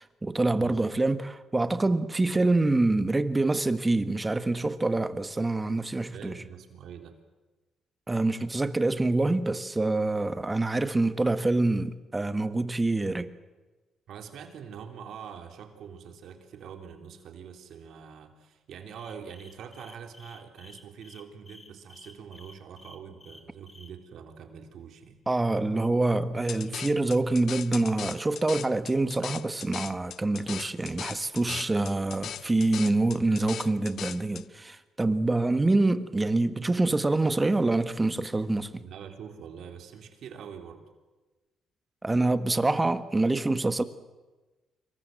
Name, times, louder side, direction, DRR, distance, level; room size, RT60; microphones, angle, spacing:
voice 1, 0.0-6.4 8.1-13.3 25.3-38.8 42.0-43.8, right 2 dB, 20° right, 1.7 m, -26 dB
voice 2, 6.1-7.2 14.1-25.2 31.5-31.7 35.0-35.3 38.8-40.8, right 7 dB, 70° right, 3.7 m, -44 dB
sound 1, 18.9-23.9, left 2 dB, 25° left, 3.5 m, -52 dB
sound 2, 26.5-34.4, left 10 dB, 70° left, 0.8 m, -39 dB
27.0 x 23.0 x 7.8 m
cardioid pair, 90°, 0 cm